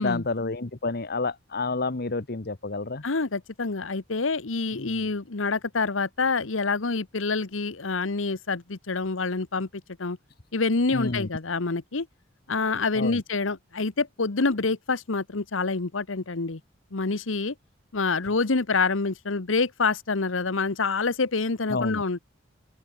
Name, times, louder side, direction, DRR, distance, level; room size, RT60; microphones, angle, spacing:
voice 1, 0.0-3.0 4.7-5.1 10.9-11.3 12.9-13.2 21.7-22.0, left 3 dB, 55° left, 1.2 m, -29 dB
voice 2, 3.0-9.7 10.0-10.2 10.5-12.1 12.5-16.6 16.9-17.5 17.9-22.2, left 4 dB, 85° left, 1.2 m, -27 dB
head